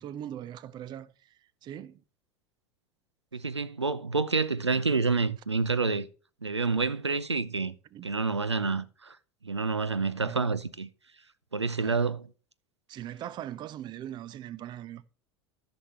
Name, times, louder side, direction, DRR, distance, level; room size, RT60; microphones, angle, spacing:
voice 1, 0.0-1.3 1.6-2.0 7.9-8.1 10.2-10.5 11.8-12.0 12.9-15.0, right 11 dB, 30° right, 0.6 m, -40 dB
voice 2, 3.3-6.1 6.4-7.7 8.0-9.2 9.4-10.9 11.5-12.3, right 4 dB, 85° right, 0.6 m, -28 dB
14.0 x 6.2 x 3.3 m
figure-of-eight pair, 80°, 14 cm